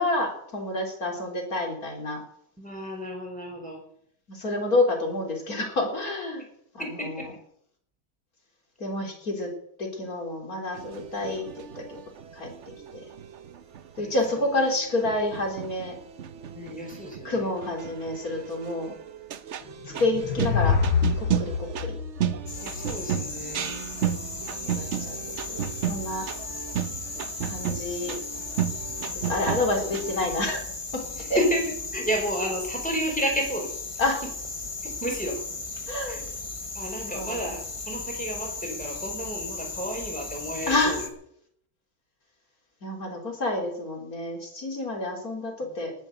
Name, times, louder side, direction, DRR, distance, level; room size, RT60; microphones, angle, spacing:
voice 1, 0.0-2.2 4.3-6.4 6.7-7.2 8.8-9.5 9.8-11.4 11.8-12.0 12.3-12.5 14.0-16.0 17.2-18.9 20.0-20.8 21.2-22.0 24.6-26.3 27.5-28.2 29.1-30.6 31.3-31.4 34.0-34.2 35.9-36.2 37.0-37.4 40.7-41.0 42.8-45.9, left 2 dB, 60° left, 1 dB, 4.1 m, -28 dB
voice 2, 2.6-3.8 6.8-7.3 14.0-14.5 16.5-17.5 22.6-23.8 31.2-33.8 34.2-34.3 34.8-35.4 36.0-36.2 36.7-41.1 45.6-45.9, equal, 5° left, 0 dB, 5.0 m, -31 dB
sound 1, 10.7-30.2, right 9 dB, 55° right, 0.9 m, -34 dB
sound 2, 19.7-23.2, left 6 dB, 75° left, 1.5 m, -26 dB
sound 3, 22.5-41.1, left 3 dB, 20° left, 1.1 m, -36 dB
18.5 x 7.9 x 7.9 m, 0.69 s
omnidirectional pair, 1.7 m